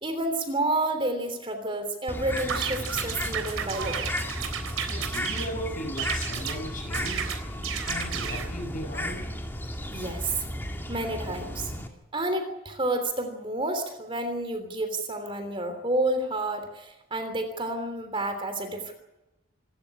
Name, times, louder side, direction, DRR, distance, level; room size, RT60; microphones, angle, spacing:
voice 1, 0.0-4.1 9.9-10.4 10.9-11.7 12.1-18.9, right 2 dB, 25° right, 7 dB, 3.2 m, -30 dB
Bird, 2.1-11.9, equal, 10° left, 2.4 m, -34 dB
sound 1, 2.4-5.5 6.0-6.6 6.9-8.5, right 7 dB, 85° right, 3.7 m, -33 dB
voice 2, 4.9-7.4 7.8-9.4, equal, 40° left, 4 dB, 7.2 m, -37 dB
27.0 x 13.5 x 10.0 m, 1.0 s
head